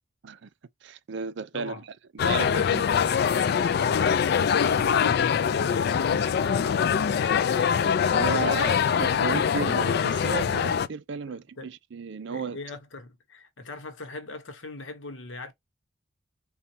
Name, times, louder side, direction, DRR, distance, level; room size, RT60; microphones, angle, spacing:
voice 1, 0.8-1.7 2.1-3.0 6.1-6.2 7.3-7.4 8.1-12.6, right 5 dB, 65° right, 0.5 m, -34 dB
voice 2, 1.5-1.9 3.6-6.7 11.3-11.7 12.3-15.5, left 3 dB, 80° left, 0.9 m, -41 dB
sound 1, 2.2-10.9, left 7 dB, 55° left, 0.3 m, -23 dB
4.0 x 2.3 x 2.7 m
head